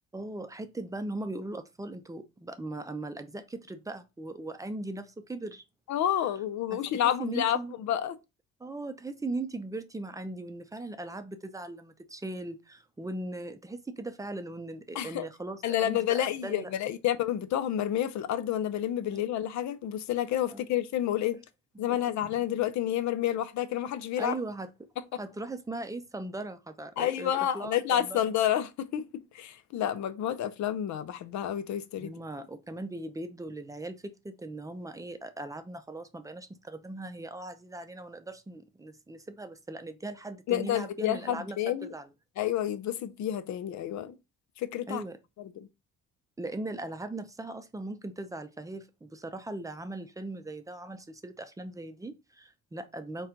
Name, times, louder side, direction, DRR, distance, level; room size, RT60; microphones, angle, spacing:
voice 1, 0.1-5.6 6.7-7.7 8.6-16.7 19.1-19.2 20.5-20.6 21.9-22.3 24.2-24.7 25.1-28.3 32.0-42.1 44.9-45.2 46.4-53.3, right 2 dB, 10° right, 0.5 m, -39 dB
voice 2, 5.9-8.2 14.9-15.3 15.6-21.4 21.8-24.3 27.0-32.1 40.5-41.9 42.4-44.2 44.6-45.0 45.4-45.5, left 11 dB, 70° left, 0.6 m, -29 dB
4.2 x 2.3 x 3.7 m
cardioid pair, 90°, 30 cm